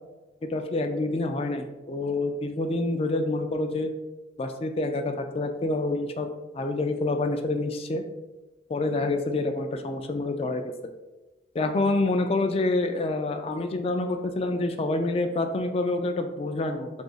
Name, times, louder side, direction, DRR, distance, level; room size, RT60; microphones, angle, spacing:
voice 1, 0.5-3.9 4.4-8.0 8.7-10.6 11.5-16.9, left 2 dB, 30° left, 6 dB, 0.3 m, -27 dB
2.8 x 2.4 x 3.9 m, 1.1 s
head